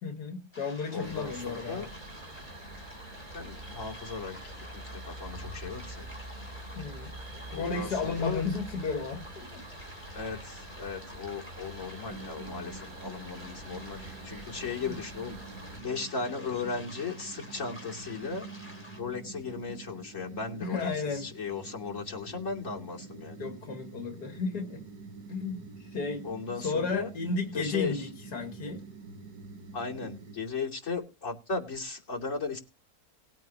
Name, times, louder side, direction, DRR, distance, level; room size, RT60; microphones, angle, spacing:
voice 1, 0.0-1.9 6.8-7.1 7.5-9.6 14.9-15.0 20.6-21.3 23.4-24.8 25.3-26.3 26.6-28.8, left 4 dB, 85° left, 5 dB, 2.4 m, -33 dB
sound 1, 0.5-19.0, left 1 dB, 5° left, 3.0 m, -50 dB
voice 2, 0.9-1.9 3.3-6.1 7.5-8.4 10.1-15.4 15.7-18.5 19.0-23.5 26.2-27.1 27.5-28.1 29.7-32.6, left 4 dB, 50° left, -2 dB, 3.2 m, -36 dB
sound 2, 1.0-15.8, right 1 dB, 65° right, 3.2 m, -45 dB
sound 3, 12.1-30.4, right 4 dB, 85° right, 1.9 m, -47 dB
20.0 x 9.2 x 2.9 m, 0.29 s
omnidirectional pair, 1.7 m